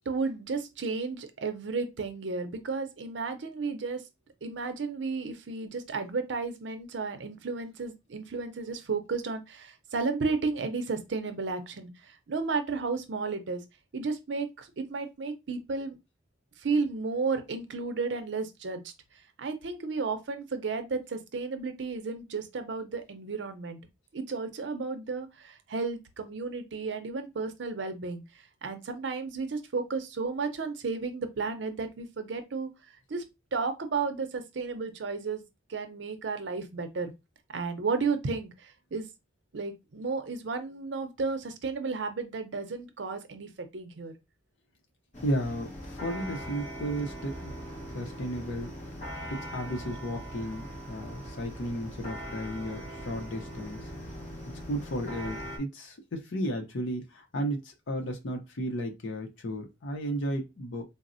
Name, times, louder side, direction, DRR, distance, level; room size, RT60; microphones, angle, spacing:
voice 1, 0.1-4.0 4.4-13.6 13.9-16.0 16.6-18.8 19.4-23.8 24.1-28.2 28.6-32.7 33.1-33.2 33.5-35.4 35.7-37.1 37.5-39.1 39.5-44.1, right 4 dB, 70° right, 0.6 m, -33 dB
sound 1, 45.1-55.6, equal, 40° left, 0.9 m, -41 dB
voice 2, 45.2-47.5 47.9-48.7 49.3-53.9 54.7-60.8, equal, 80° left, 0.6 m, -34 dB
4.0 x 2.0 x 2.5 m
head